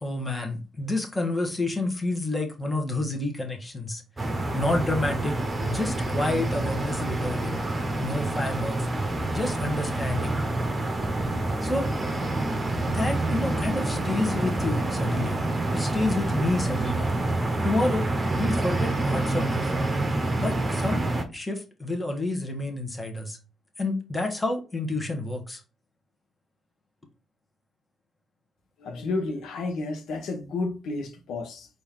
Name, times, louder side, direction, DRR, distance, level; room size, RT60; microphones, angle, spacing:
voice 1, 0.0-4.0 4.5-5.4 5.6-7.6 8.0-8.9 9.3-10.4 11.6-11.9 12.9-15.4 15.7-17.1 17.6-18.1 18.4-19.7 20.4-23.4 23.8-25.6, left 2 dB, 15° left, 1.4 m, -29 dB
sound 1, 4.2-21.2, right 2 dB, 25° right, 1.0 m, -27 dB
voice 2, 28.8-31.7, left 3 dB, 75° left, 1.0 m, -31 dB
4.4 x 2.8 x 3.6 m
cardioid pair, 90°, 0 cm